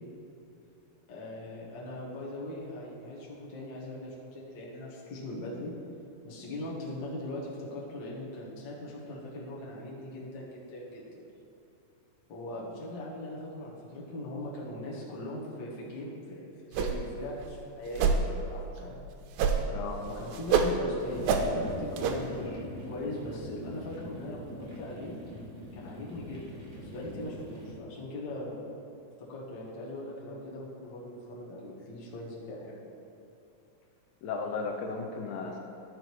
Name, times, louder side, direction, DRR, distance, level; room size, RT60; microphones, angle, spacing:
voice 1, 1.1-5.7 6.2-11.2 12.3-19.0 20.0-25.1 25.7-28.7 29.2-32.9, left 1 dB, 45° left, -5 dB, 1.5 m, -40 dB
sound 1, 16.7-17.1 17.4-17.5 17.9-18.2 19.4-19.8 20.1-20.8 21.2-21.5 22.0-22.2, right 5 dB, 80° right, 2.4 m, -26 dB
voice 2, 19.7-20.1 34.2-35.6, left 4 dB, 80° left, 2 dB, 2.3 m, -35 dB
sound 2, 21.0-27.8, equal, 50° right, 0.8 m, -43 dB
13.0 x 5.1 x 4.6 m, 2.8 s
omnidirectional pair, 4.2 m